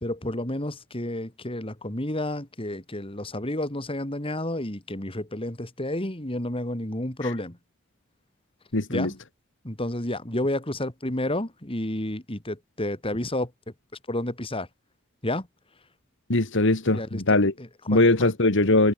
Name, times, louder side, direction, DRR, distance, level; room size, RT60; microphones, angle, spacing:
voice 1, 0.0-7.6 8.9-9.1 9.6-13.5 14.1-14.7 15.2-15.5 16.9-18.3, left 1 dB, 25° left, 3.0 m, -31 dB
voice 2, 8.7-9.1 16.3-17.5 17.9-18.9, left 2 dB, 60° left, 2.1 m, -21 dB
head